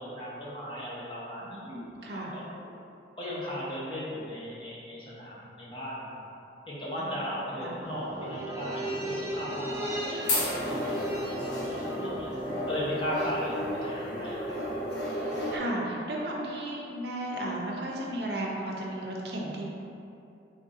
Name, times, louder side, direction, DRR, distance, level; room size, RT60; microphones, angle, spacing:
voice 1, 0.0-2.7 3.2-6.1 6.7-12.3 12.7-14.6, equal, 25° left, -7 dB, 0.8 m, -37 dB
voice 2, 1.4-2.3 6.8-7.8 13.3-13.7 15.5-19.6, right 1 dB, 65° right, -2 dB, 0.6 m, -35 dB
sound 1, 7.8-14.4 14.7-14.8, right 1 dB, 15° right, 0.4 m, -37 dB
sound 2, 9.7-15.6, left 1 dB, 75° left, 0.9 m, -32 dB
3.7 x 3.6 x 2.6 m, 2.7 s
head